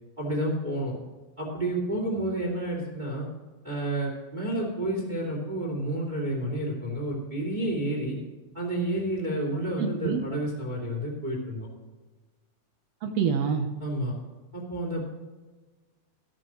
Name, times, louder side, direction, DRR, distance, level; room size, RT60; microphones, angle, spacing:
voice 1, 0.2-0.9 1.4-3.3 3.6-8.2 8.5-11.7 13.8-14.1 14.5-15.1, right 1 dB, 15° right, -3 dB, 2.6 m, -30 dB
voice 2, 9.8-10.2 13.0-13.7, right 6 dB, 90° right, 4 dB, 1.4 m, -26 dB
14.0 x 12.5 x 3.1 m, 1.3 s
omnidirectional pair, 4.2 m